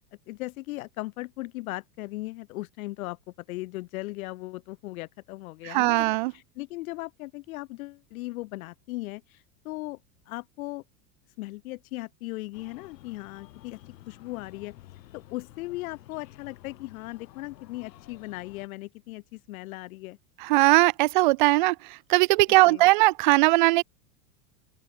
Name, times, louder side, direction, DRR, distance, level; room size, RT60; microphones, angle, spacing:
voice 1, 0.3-3.2 3.5-10.0 10.3-10.8 11.4-14.7 15.1-20.2 22.7-22.8, left 20 dB, 60° left, 1.9 m, -38 dB
voice 2, 5.6-6.3 20.4-23.8, right 21 dB, 35° right, 0.4 m, -20 dB
Breathing, 12.5-18.7, left 15 dB, 90° left, 6.1 m, -51 dB
open air
supercardioid pair, 175°, 48 cm